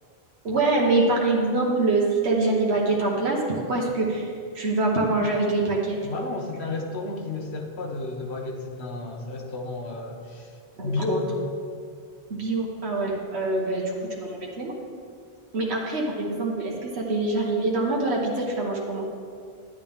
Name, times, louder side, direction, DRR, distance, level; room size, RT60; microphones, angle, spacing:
voice 1, 0.4-6.0 10.8-11.2 12.3-14.7 15.5-19.1, right 2 dB, 90° right, -3 dB, 1.4 m, -25 dB
voice 2, 6.0-10.5 10.8-11.4, left 3 dB, 85° left, 1 dB, 1.4 m, -32 dB
10.5 x 10.5 x 3.6 m, 2.3 s
omnidirectional pair, 1.1 m